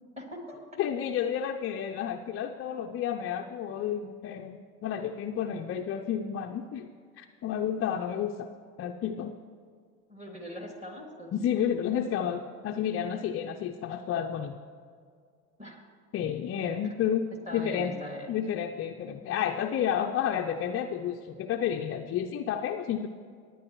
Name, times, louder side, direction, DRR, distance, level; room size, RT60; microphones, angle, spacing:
voice 1, 0.2-0.6 10.1-11.3 15.6-15.8 17.5-18.4, left 1 dB, 15° right, 1 dB, 2.5 m, -41 dB
voice 2, 0.8-6.9 7.2-8.5 8.8-9.3 11.3-14.6 16.1-17.9 18.3-23.1, left 9 dB, 30° left, 2 dB, 0.5 m, -31 dB
18.0 x 9.5 x 3.1 m, 2.1 s
hypercardioid pair, 75°, 44 cm